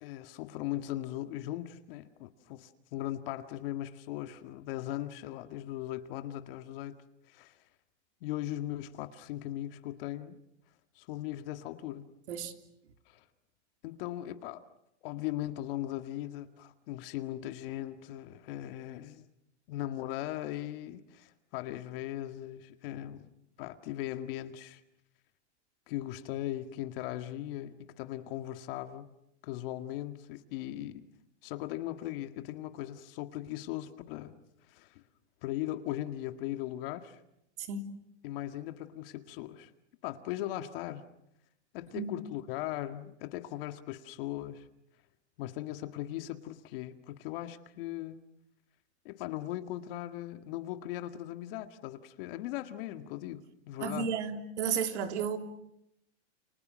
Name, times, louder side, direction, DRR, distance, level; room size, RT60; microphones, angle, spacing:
voice 1, 0.0-7.6 8.2-10.4 11.0-12.1 13.1-13.2 13.8-14.6 15.0-19.3 19.7-23.3 23.6-24.8 25.9-29.1 29.4-31.1 31.4-35.0 35.4-37.2 38.2-39.7 40.0-41.1 41.7-44.7 45.4-48.2 49.1-54.1, left 14 dB, 50° left, 1.9 m, -39 dB
voice 2, 53.8-55.4, right 6 dB, 70° right, 3.5 m, -33 dB
30.0 x 29.5 x 6.4 m
hypercardioid pair, 140°, 36 cm